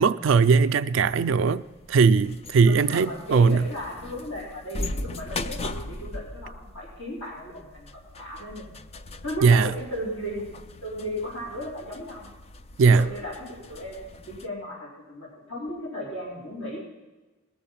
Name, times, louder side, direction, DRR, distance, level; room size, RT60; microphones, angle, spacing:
voice 1, 0.0-3.6 9.4-9.7 12.8-13.1, right 5 dB, 65° right, 0.4 m, -19 dB
sound 1, 0.9-14.5, left 2 dB, 30° left, 0.4 m, -39 dB
voice 2, 2.6-8.8 9.2-10.5 10.8-12.3 12.9-16.8, equal, 80° left, 4.2 m, -36 dB
19.5 x 6.9 x 5.7 m
head